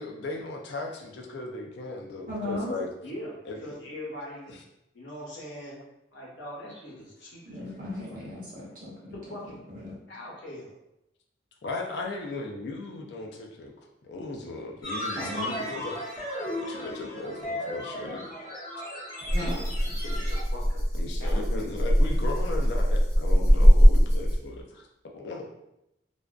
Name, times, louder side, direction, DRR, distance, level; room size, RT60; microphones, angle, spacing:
voice 1, 0.0-2.9 3.5-3.7 4.5-4.6 11.6-13.7 14.0-16.0 16.7-18.3 19.4-19.5 21.0-24.8 25.1-25.5, left 2 dB, 65° left, 1 dB, 0.4 m, -37 dB
voice 2, 2.3-2.7 7.5-8.9 9.5-10.0 15.2-15.5 19.3-19.6, left 1 dB, 45° right, -7 dB, 0.9 m, -36 dB
voice 3, 3.0-4.5 4.9-5.8 6.1-7.6 9.1-9.6 10.1-10.7 20.0-20.8 21.2-21.7, equal, 85° left, -4 dB, 0.8 m, -41 dB
sound 1, 14.8-20.4, left 1 dB, 20° left, 1.0 m, -35 dB
Rattle (instrument), 19.3-24.6, equal, 15° right, 0.7 m, -21 dB
2.4 x 2.2 x 2.3 m, 0.85 s
head